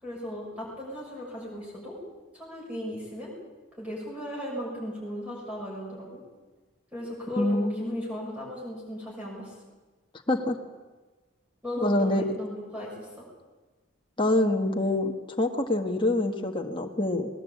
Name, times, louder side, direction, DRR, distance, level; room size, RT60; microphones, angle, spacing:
voice 1, 0.0-2.0 2.3-3.3 3.8-6.2 6.9-9.5 11.6-13.3, equal, 5° right, -5 dB, 6.5 m, -36 dB
voice 2, 7.4-8.0 10.3-10.6 11.8-12.2 14.2-17.3, left 2 dB, 25° left, 2 dB, 1.5 m, -26 dB
20.0 x 20.0 x 8.5 m, 1.3 s
head